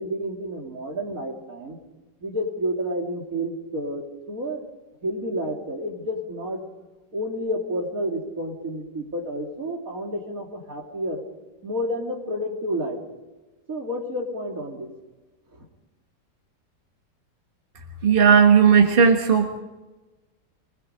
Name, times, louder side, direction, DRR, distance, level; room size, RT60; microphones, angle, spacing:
voice 1, 0.0-1.8 2.2-4.6 5.0-6.6 7.1-11.2 11.6-13.0 13.7-14.9 15.5-15.6, equal, 50° right, 1 dB, 3.4 m, -30 dB
voice 2, 18.0-19.6, right 6 dB, 35° right, 3 dB, 1.5 m, -16 dB
24.0 x 20.5 x 5.2 m, 1.1 s
omnidirectional pair, 1.9 m